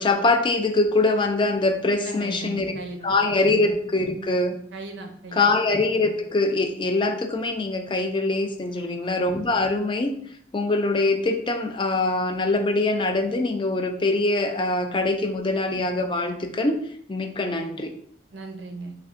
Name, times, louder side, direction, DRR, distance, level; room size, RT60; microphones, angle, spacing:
voice 1, 0.0-2.8 3.0-4.5 5.4-10.1 10.5-16.8 17.1-17.9, left 2 dB, 25° left, 5 dB, 0.4 m, -23 dB
voice 2, 1.9-3.5 4.7-5.5 8.7-9.1 18.3-19.0, right 3 dB, 85° right, 4 dB, 0.6 m, -38 dB
3.5 x 2.3 x 3.4 m, 0.65 s
head